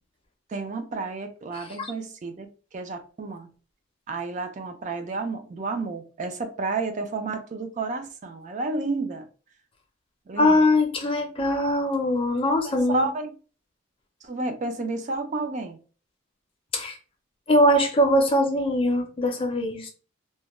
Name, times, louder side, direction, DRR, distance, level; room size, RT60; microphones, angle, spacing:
voice 1, 0.5-3.5 4.1-9.3 10.3-10.6 12.6-13.3 14.2-15.8, right 3 dB, 35° right, 0.3 m, -31 dB
voice 2, 1.5-1.9 10.4-13.1 16.7-17.0 17.5-19.9, left 1 dB, 25° left, 0.5 m, -22 dB
2.2 x 2.1 x 2.9 m
head